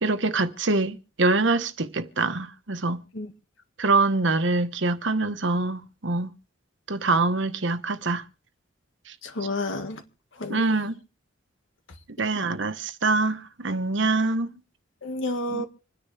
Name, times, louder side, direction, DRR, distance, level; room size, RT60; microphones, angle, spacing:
voice 1, 0.0-3.0 3.8-6.3 6.9-8.2 10.5-11.0 12.2-14.5 15.5-15.6, right 3 dB, 70° right, 1.1 m, -24 dB
voice 2, 9.2-10.0 10.4-10.7 15.0-15.7, left 1 dB, 75° left, 1.8 m, -30 dB
26.5 x 10.0 x 3.4 m
head